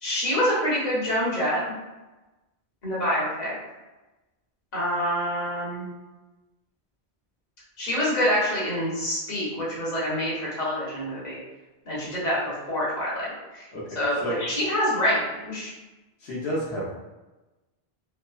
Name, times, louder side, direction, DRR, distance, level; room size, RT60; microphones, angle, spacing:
voice 1, 0.0-1.6 2.8-3.5 4.7-5.9 7.8-11.4 11.8-13.6 13.9-15.7, equal, 45° left, -8 dB, 1.1 m, -26 dB
voice 2, 13.7-14.4 16.2-16.9, equal, 90° left, -6 dB, 1.1 m, -31 dB
3.1 x 2.0 x 2.3 m, 1.1 s
omnidirectional pair, 1.1 m